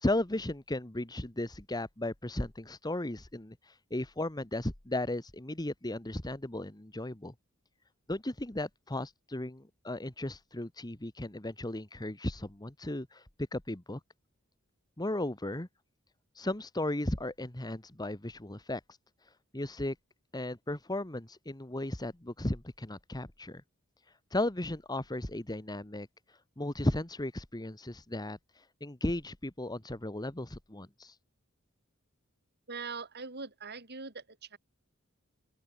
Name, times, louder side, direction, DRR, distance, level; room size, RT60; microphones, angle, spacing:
voice 1, 0.0-3.6 3.9-7.3 8.1-13.2 13.5-14.0 15.0-15.7 16.4-18.8 19.5-19.9 20.3-23.6 24.3-26.1 26.6-28.4 28.8-31.1, left 1 dB, 20° left, 1.5 m, -35 dB
voice 2, 32.7-34.6, right 4 dB, 50° right, 6.3 m, -42 dB
open air
head